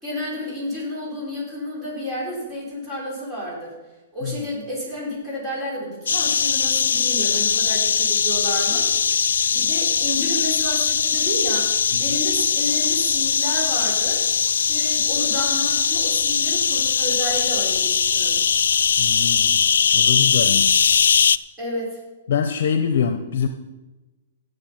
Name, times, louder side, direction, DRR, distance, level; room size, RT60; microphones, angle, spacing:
voice 1, 0.0-3.7 4.1-8.9 9.5-14.2 14.7-18.4 21.6-22.0, equal, 10° right, -7 dB, 4.8 m, -30 dB
sound 1, 6.1-21.4, left 7 dB, 85° left, 0.3 m, -20 dB
voice 2, 19.0-19.6 19.9-20.8 22.3-23.5, left 7 dB, 70° left, 8 dB, 0.8 m, -24 dB
17.0 x 6.8 x 5.7 m, 1.1 s
hypercardioid pair, 145°, 0 cm